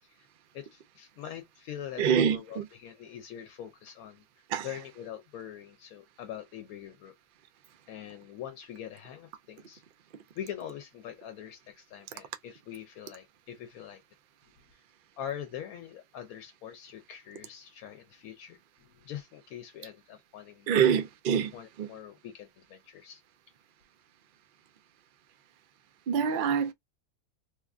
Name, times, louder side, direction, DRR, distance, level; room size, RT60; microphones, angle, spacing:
voice 1, 0.5-4.2 4.6-7.1 7.9-9.8 10.4-14.0 14.7-14.8 15.2-20.8 21.5-23.2, left 10 dB, 80° left, 1.0 m, -43 dB
voice 2, 2.0-2.7 4.5-4.7 20.7-21.5 21.8-21.9 26.1-26.7, right 7 dB, 65° right, 0.5 m, -25 dB
3.1 x 2.4 x 2.3 m
omnidirectional pair, 1.5 m